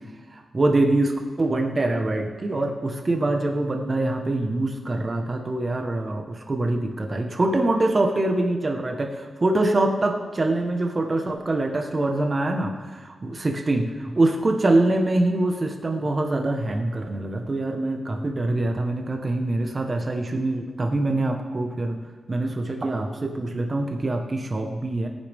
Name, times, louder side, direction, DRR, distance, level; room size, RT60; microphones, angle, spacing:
voice 1, 0.3-22.0 22.3-25.1, right 2 dB, 30° right, 3 dB, 1.5 m, -24 dB
19.0 x 9.8 x 3.7 m, 1.4 s
wide cardioid pair, 110°, 0 cm